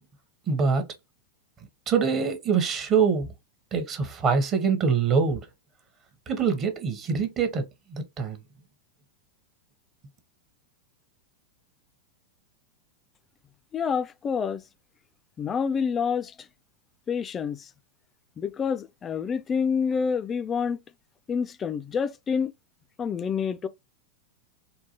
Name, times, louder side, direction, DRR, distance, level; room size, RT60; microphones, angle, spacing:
voice 1, 0.5-0.8 1.9-3.3 3.7-5.5 6.3-7.6 7.9-8.4, right 5 dB, 30° right, 0.8 m, -24 dB
voice 2, 13.7-14.6 15.4-16.3 17.1-17.7 18.4-20.8 21.3-22.5 23.0-23.7, left 6 dB, 25° left, 0.4 m, -27 dB
3.8 x 2.3 x 2.8 m
figure-of-eight pair, 90°, 0 cm